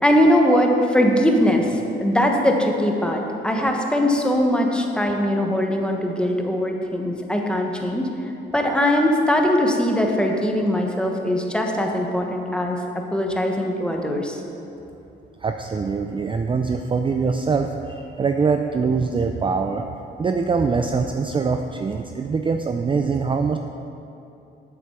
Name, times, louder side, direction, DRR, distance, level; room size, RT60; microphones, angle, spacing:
voice 1, 0.0-8.1 8.5-14.4, left 1 dB, 5° left, 1 dB, 1.2 m, -21 dB
voice 2, 15.4-19.8 20.2-23.6, right 5 dB, 25° right, 5 dB, 0.4 m, -23 dB
7.9 x 7.9 x 5.8 m, 2.8 s
cardioid pair, 90°, 20 cm